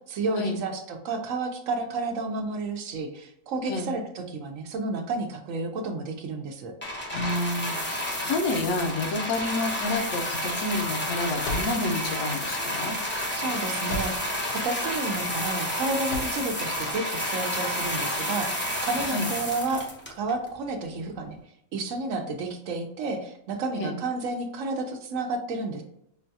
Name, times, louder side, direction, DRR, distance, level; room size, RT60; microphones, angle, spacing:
voice 1, 0.1-6.7 13.3-14.1 14.5-19.9 20.2-21.4 21.7-25.8, right 3 dB, 70° right, 4 dB, 0.9 m, -31 dB
sound 1, 6.8-20.5 21.2-21.3, equal, 15° left, 0.5 m, -30 dB
voice 2, 7.1-12.9 19.1-19.3 23.8-24.0, left 2 dB, 75° left, 3 dB, 1.1 m, -29 dB
sound 2, 9.4-14.5 14.8-15.5 15.9-16.5, left 1 dB, 60° left, 0.7 m, -38 dB
5.5 x 2.3 x 2.6 m, 0.78 s
omnidirectional pair, 1.5 m